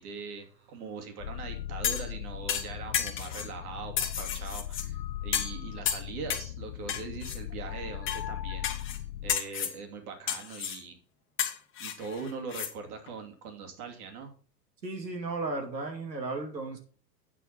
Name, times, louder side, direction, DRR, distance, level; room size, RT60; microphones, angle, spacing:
voice 1, 0.0-8.7 9.2-11.0 11.8-14.3, right 5 dB, 60° right, 4 dB, 2.9 m, -41 dB
sound 1, 1.2-9.4, left 12 dB, 85° left, 0.7 m, -38 dB
sound 2, 1.8-2.1 2.5-3.5 4.0-4.9 5.3-5.6 5.9-6.5 6.9-7.4 8.1-8.2 8.6-9.0 9.3-9.8 10.3-10.8 11.4-12.7 13.1-13.2, left 8 dB, 25° left, 1.4 m, -32 dB
voice 2, 14.8-16.8, right 3 dB, 90° right, 5 dB, 2.5 m, -34 dB
8.6 x 5.8 x 6.0 m, 0.42 s
hypercardioid pair, 105°, 49 cm